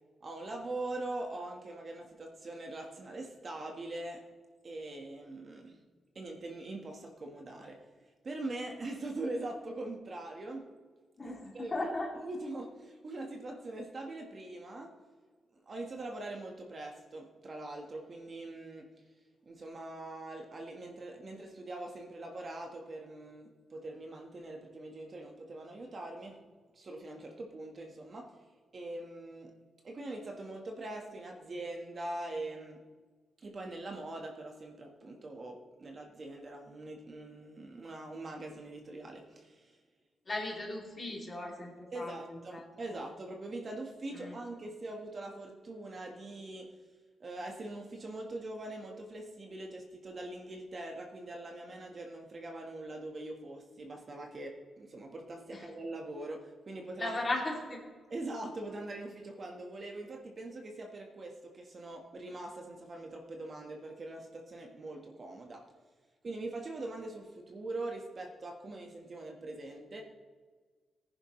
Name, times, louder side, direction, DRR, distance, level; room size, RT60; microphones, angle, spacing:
voice 1, 0.2-4.2 4.6-5.8 6.1-7.8 8.2-10.7 11.2-11.9 12.2-15.0 15.6-18.9 19.4-26.4 26.7-28.4 28.7-29.5 29.8-32.8 33.4-39.8 41.9-46.7 47.2-57.2 58.1-65.6 66.2-70.0, right 2 dB, 35° right, 2 dB, 1.5 m, -42 dB
voice 2, 11.2-12.1 40.3-42.7 42.9-43.0 44.1-44.4 55.5-55.7 57.0-57.8, left 2 dB, 25° left, -1 dB, 2.8 m, -37 dB
18.5 x 10.5 x 3.2 m, 1.4 s
wide cardioid pair, 150°, 0 cm